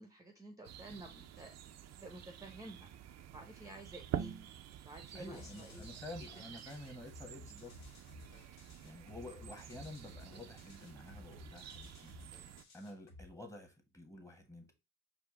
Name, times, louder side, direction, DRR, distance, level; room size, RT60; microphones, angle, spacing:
voice 1, 0.0-1.5 2.0-2.9 3.3-4.4 4.8-5.9 6.2-6.9 9.4-9.5, right 2 dB, 10° right, 0.8 m, -52 dB
sound 1, 0.6-12.6, right 10 dB, 60° right, 0.5 m, -48 dB
voice 2, 5.1-7.7 8.8-12.4 12.7-14.7, left 1 dB, 10° left, 1.3 m, -50 dB
sound 2, 5.3-13.3, left 2 dB, 75° left, 2.0 m, -56 dB
5.0 x 2.7 x 3.7 m
cardioid pair, 90°, 30 cm